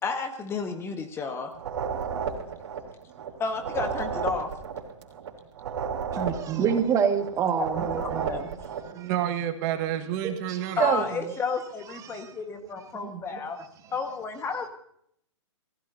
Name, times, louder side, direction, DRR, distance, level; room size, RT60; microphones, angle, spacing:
voice 1, 0.0-1.5 3.4-4.5 8.0-8.4 10.8-13.6 13.9-14.7, left 4 dB, 15° left, 6 dB, 1.4 m, -31 dB
sound 1, 1.5-3.3 3.5-7.3 7.5-8.9, right 6 dB, 65° right, 3.2 m, -33 dB
voice 2, 6.1-8.5 8.8-9.1 10.2-11.3 11.9-12.3 12.9-13.7, right 7 dB, 20° right, 6 dB, 1.7 m, -28 dB
voice 3, 8.6-11.0, right 11 dB, 35° right, 7 dB, 1.5 m, -30 dB
27.5 x 15.5 x 2.7 m, 0.69 s
hypercardioid pair, 135°, 16 cm